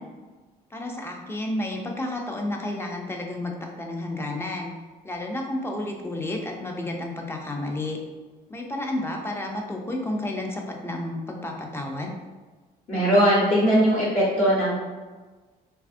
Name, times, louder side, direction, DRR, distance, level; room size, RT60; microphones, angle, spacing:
voice 1, 0.7-4.7 5.0-8.0 8.5-12.1, left 1 dB, 15° left, 1 dB, 0.4 m, -31 dB
voice 2, 12.9-14.7, equal, 50° left, -7 dB, 1.1 m, -20 dB
3.3 x 2.3 x 2.5 m, 1.3 s
cardioid pair, 110°, 17 cm